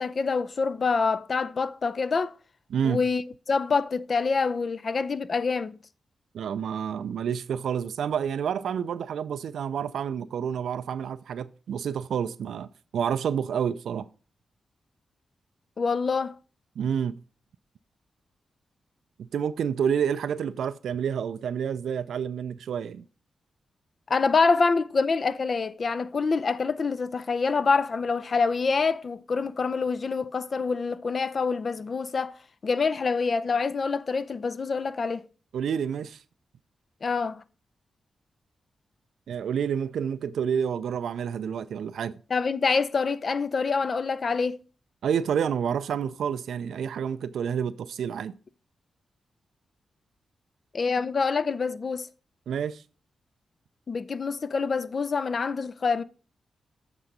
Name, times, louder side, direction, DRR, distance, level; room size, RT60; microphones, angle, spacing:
voice 1, 0.0-2.3 2.8-3.2 3.5-5.8 15.8-16.4 24.1-32.3 32.6-35.3 37.0-37.4 42.3-44.6 50.7-52.1 53.9-56.0, left 4 dB, 55° left, 0.5 m, -26 dB
voice 2, 2.7-3.0 6.3-14.1 16.8-17.2 19.2-23.0 35.5-36.2 39.3-42.2 45.0-48.3 52.5-52.8, right 8 dB, 80° right, 0.3 m, -29 dB
8.1 x 3.8 x 5.3 m
supercardioid pair, 50°, 0 cm